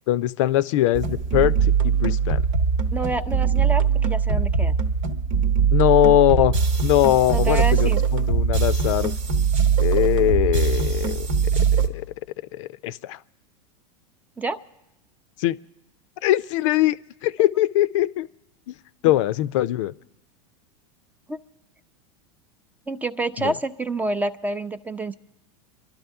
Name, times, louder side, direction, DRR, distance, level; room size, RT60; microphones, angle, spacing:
voice 1, 0.1-1.5 1.8-2.4 5.7-6.5 6.8-9.1 9.8-11.3 11.7-12.0 12.5-13.2 15.4-15.6 16.2-17.0 17.2-18.3 18.7-18.8 19.0-19.9 23.4-23.5, left 14 dB, 70° left, 15 dB, 0.5 m, -21 dB
sound 1, 0.9-11.9, right 6 dB, 75° right, 1.1 m, -21 dB
voice 2, 2.9-4.8 7.3-8.0 14.4-14.6 21.3-21.4 22.9-25.1, right 2 dB, 10° right, 11 dB, 0.5 m, -28 dB
27.0 x 12.0 x 3.5 m, 0.95 s
hypercardioid pair, 110°, 17 cm